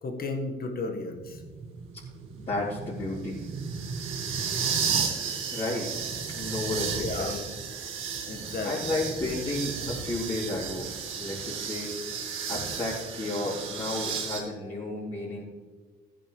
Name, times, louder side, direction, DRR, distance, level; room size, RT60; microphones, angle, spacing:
voice 1, 0.0-1.4 7.0-7.4 8.3-8.9, left 3 dB, 50° left, 4 dB, 1.7 m, -34 dB
sound 1, 1.3-14.4, right 6 dB, 90° right, 1.8 m, -33 dB
voice 2, 2.3-3.7 5.5-7.4 8.6-10.9 11.2-11.9 12.5-15.4, left 2 dB, 30° left, -11 dB, 4.1 m, -32 dB
15.5 x 9.8 x 3.4 m, 1.4 s
cardioid pair, 90°, 20 cm